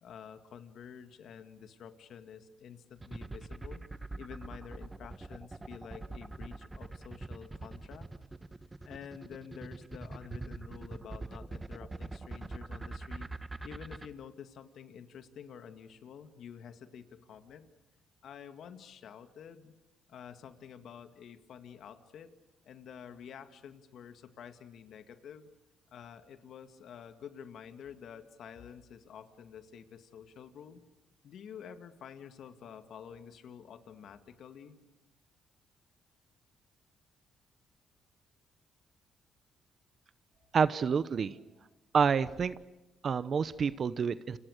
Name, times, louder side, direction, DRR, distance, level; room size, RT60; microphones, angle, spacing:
voice 1, 0.0-3.8 4.2-8.1 8.8-13.3 13.6-17.7 18.2-19.7 20.1-22.3 22.6-25.5 25.9-30.8 31.2-34.8, left 8 dB, 70° left, 9 dB, 2.1 m, -49 dB
sound 1, 3.0-14.1, right 2 dB, 20° right, 1.2 m, -42 dB
voice 2, 40.5-41.3 41.9-42.5 43.0-44.4, right 6 dB, 50° right, 15 dB, 0.8 m, -28 dB
29.0 x 26.5 x 6.6 m, 0.98 s
cardioid pair, 90°, 0 cm